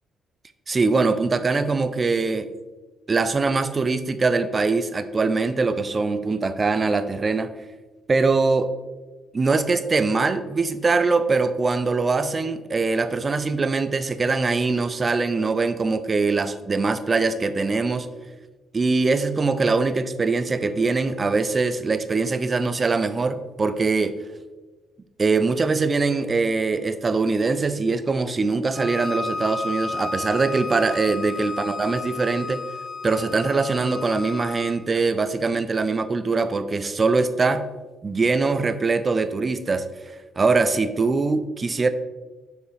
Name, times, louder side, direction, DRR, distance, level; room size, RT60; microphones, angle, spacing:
voice 1, 0.7-2.5 3.1-7.5 8.1-8.7 9.3-18.1 18.7-24.2 25.2-32.6 33.0-37.7 38.0-39.9 40.4-41.9, right 3 dB, 30° right, 11 dB, 0.5 m, -22 dB
Bowed string instrument, 28.7-34.8, left 3 dB, 35° left, 1.0 m, -32 dB
6.8 x 4.8 x 3.3 m, 1.2 s
cardioid pair, 90°, 0 cm